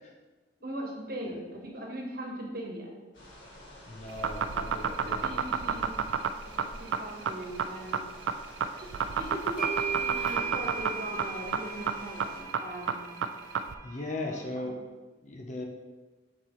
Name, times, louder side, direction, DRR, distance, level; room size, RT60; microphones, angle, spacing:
voice 1, 0.6-2.9 4.7-5.9 6.4-8.1 8.8-13.2 14.2-14.8, right 1 dB, 55° right, -1 dB, 1.3 m, -40 dB
sound 1, 3.1-12.4, equal, 85° left, 1.9 m, -48 dB
voice 2, 3.9-5.3 5.7-5.8 13.8-14.8 15.2-15.6, left 2 dB, 40° left, 2 dB, 0.7 m, -37 dB
sound 2, 4.1-13.7, right 7 dB, 85° right, 0.3 m, -30 dB
sound 3, 9.0-9.1 9.6-14.4, right 6 dB, 5° right, 1.7 m, -37 dB
7.7 x 4.2 x 3.2 m, 1.2 s
head